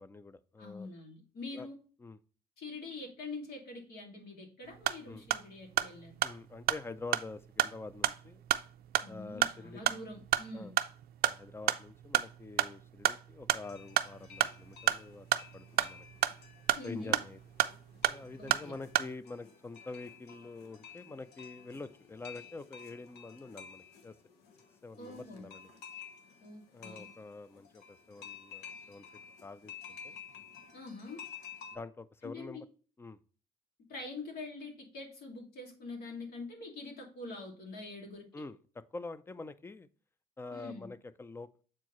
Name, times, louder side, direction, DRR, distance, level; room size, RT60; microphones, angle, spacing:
voice 1, 0.0-0.9 1.5-1.7 2.0-2.2 5.1-5.3 6.2-8.4 9.1-9.8 10.5-10.7 11.2-15.3 15.5-16.1 16.8-17.4 18.1-24.2 24.8-25.7 26.7-29.1 29.4-30.1 31.1-31.2 31.7-32.6 33.0-33.2 38.3-39.9 40.4-41.6, left 3 dB, 15° left, 15 dB, 0.4 m, -46 dB
voice 2, 0.6-1.7 2.6-6.2 9.0-10.7 16.7-17.2 18.4-18.7 25.0-25.5 26.4-27.1 30.7-31.2 32.2-32.6 33.9-38.2 40.5-40.9, left 3 dB, 65° left, 0 dB, 2.3 m, -45 dB
sound 1, 4.7-19.1, right 13 dB, 65° right, 0.4 m, -33 dB
sound 2, 13.6-31.8, left 7 dB, 85° left, 1.1 m, -52 dB
7.3 x 4.5 x 3.0 m, 0.40 s
cardioid pair, 110°, 17 cm